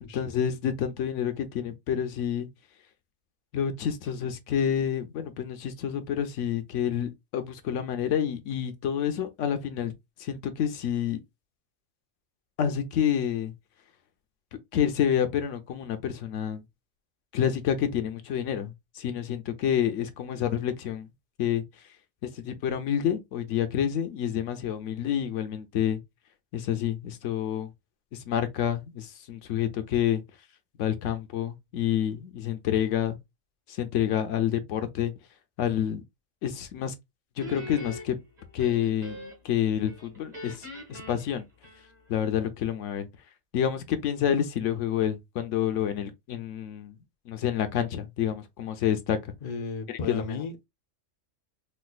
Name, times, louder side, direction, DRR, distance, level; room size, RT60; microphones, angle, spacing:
voice 1, 0.1-2.5 3.5-9.9 10.2-11.2 12.6-13.5 14.7-16.6 17.3-21.1 21.4-21.6 22.2-26.0 26.5-27.7 28.2-30.2 30.8-33.2 33.8-35.1 35.6-36.0 36.4-36.9 37.4-38.2 38.5-39.2 39.4-41.4 42.1-43.1 43.5-46.9 47.3-49.3 49.9-50.2, left 9 dB, 80° left, 1.0 m, -28 dB
Guitar, 37.4-39.6 39.9-42.2, left 1 dB, 35° right, 1.5 m, -42 dB
voice 2, 49.4-50.7, left 4 dB, 45° left, 0.6 m, -34 dB
4.2 x 2.4 x 2.2 m
omnidirectional pair, 1.3 m